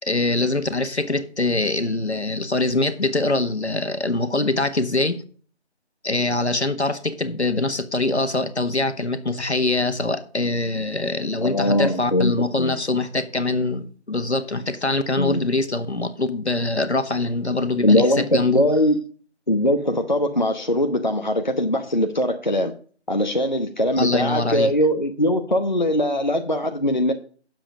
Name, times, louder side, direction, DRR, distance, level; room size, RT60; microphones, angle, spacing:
voice 1, 0.0-5.2 6.0-18.6 24.0-24.7, left 2 dB, 70° left, 1.6 m, -23 dB
voice 2, 11.4-12.7 15.2-15.5 17.8-19.0 19.5-22.7 23.1-27.1, left 1 dB, 40° left, 0.9 m, -21 dB
9.4 x 7.4 x 4.9 m
figure-of-eight pair, 170°, 34 cm